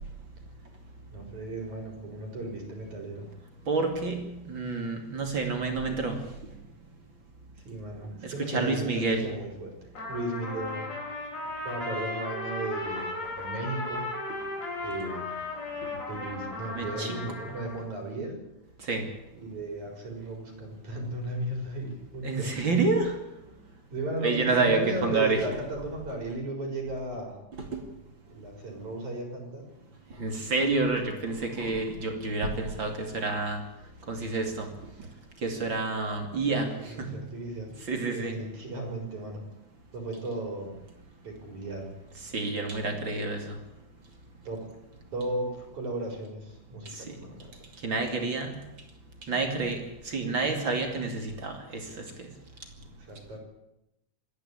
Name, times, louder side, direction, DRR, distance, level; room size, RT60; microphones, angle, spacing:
voice 1, 1.1-3.3 7.7-9.8 10.1-10.9 11.7-14.1 14.8-15.3 16.1-18.4 19.3-22.5 23.9-27.3 28.3-29.6 36.8-37.7 38.1-39.4 39.9-40.7 41.2-41.9 44.5-44.6 45.1-47.5 53.0-53.4, right 1 dB, 65° right, 2 dB, 6.0 m, -35 dB
voice 2, 3.7-6.2 8.2-9.3 16.7-17.2 18.9-19.0 22.2-23.1 24.2-25.5 30.2-33.6 34.1-34.7 35.4-36.7 37.0-37.2 37.9-38.3 42.3-43.4 47.8-48.6 49.3-52.0, right 3 dB, 40° right, 4 dB, 3.0 m, -28 dB
Trumpet, 9.9-17.8, left 2 dB, 55° left, 5.9 m, -36 dB
25.5 x 11.0 x 9.9 m, 0.90 s
omnidirectional pair, 3.6 m